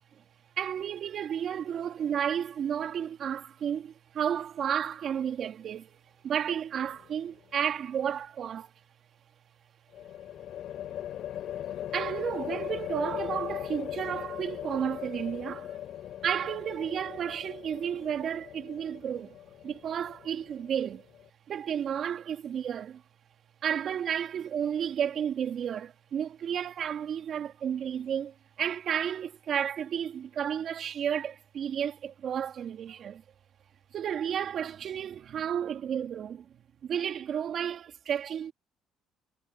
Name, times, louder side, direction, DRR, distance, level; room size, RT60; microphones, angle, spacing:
voice 1, 0.6-6.0 6.2-8.7 11.9-15.8 16.2-19.4 19.6-21.1 21.5-23.0 23.6-33.2 33.9-36.5 36.8-38.5, right 8 dB, 55° right, 3.2 m, -32 dB
sound 1, 6.8-7.4 9.9-21.3, left 11 dB, 65° left, 5.2 m, -39 dB
cardioid pair, 95°, 0 cm